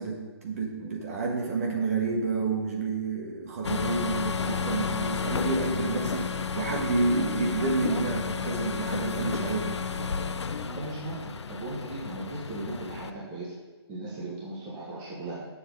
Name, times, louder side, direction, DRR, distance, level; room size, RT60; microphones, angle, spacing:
voice 1, 0.0-9.7, right 3 dB, 35° right, -1 dB, 1.4 m, -29 dB
sound 1, 3.6-13.1, left 6 dB, 90° left, 0.6 m, -32 dB
voice 2, 6.0-6.4 9.9-10.3 10.7-13.5 13.9-15.5, right 1 dB, 15° right, -6 dB, 1.2 m, -37 dB
9.0 x 7.1 x 3.9 m, 1.3 s
hypercardioid pair, 165°, 14 cm